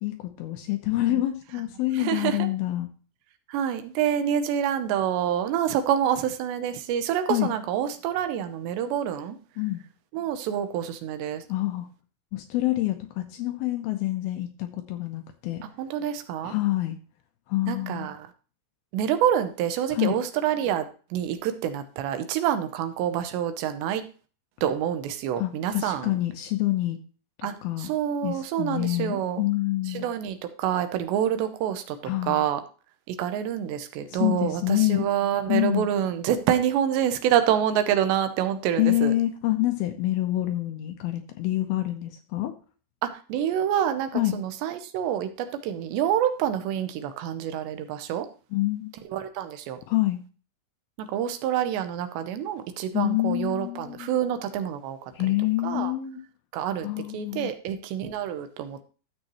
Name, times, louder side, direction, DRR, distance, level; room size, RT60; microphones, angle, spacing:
voice 1, 0.0-2.9 7.3-7.5 9.6-9.8 11.5-11.9 12.3-15.6 16.4-17.0 17.5-18.1 19.9-20.2 25.4-27.0 27.6-27.9 28.2-30.1 32.0-32.4 34.1-35.1 35.5-35.9 38.8-42.5 44.1-44.4 48.5-48.9 49.9-50.2 52.9-54.1 55.1-56.2 56.8-57.5, left 16 dB, 80° left, 7 dB, 2.4 m, -27 dB
voice 2, 1.9-2.5 3.5-9.4 10.1-11.4 15.8-16.5 17.7-18.2 18.9-24.0 24.6-26.2 27.4-29.4 29.9-32.0 32.2-32.6 33.1-39.1 43.0-48.3 49.1-49.8 51.0-55.0 55.6-55.9 56.5-56.9 57.1-58.8, right 10 dB, 85° right, 9 dB, 3.1 m, -27 dB
13.0 x 7.3 x 3.1 m, 0.37 s
omnidirectional pair, 4.9 m